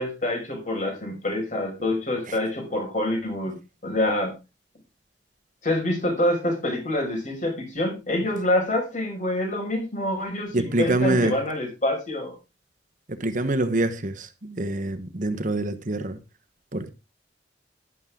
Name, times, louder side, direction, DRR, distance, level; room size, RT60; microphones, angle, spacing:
voice 1, 0.0-3.6 3.8-4.3 5.6-12.4, left 1 dB, 45° left, 5.8 m, -26 dB
voice 2, 10.5-11.3 13.1-16.2 16.7-16.9, right 2 dB, 45° right, 1.3 m, -25 dB
12.0 x 11.0 x 3.8 m
head